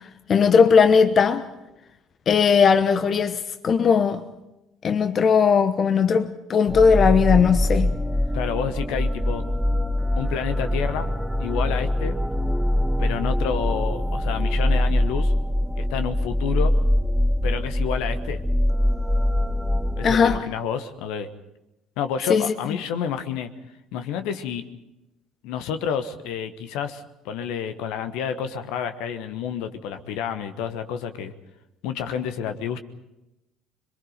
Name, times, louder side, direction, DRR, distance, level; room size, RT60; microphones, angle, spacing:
voice 1, 0.3-1.5 2.3-4.2 4.8-7.9 20.0-20.4 22.3-22.5, left 6 dB, 45° left, 1.0 m, -18 dB
sound 1, 6.7-20.4, left 1 dB, 5° right, 0.7 m, -23 dB
voice 2, 8.3-9.5 10.1-11.1 11.4-12.2 13.0-15.3 15.8-16.8 17.4-18.4 20.0-21.3 22.0-23.5 23.9-24.6 25.4-31.3 31.8-32.8, left 8 dB, 65° left, 1.3 m, -29 dB
26.5 x 23.0 x 5.2 m
hypercardioid pair, 55°, 0 cm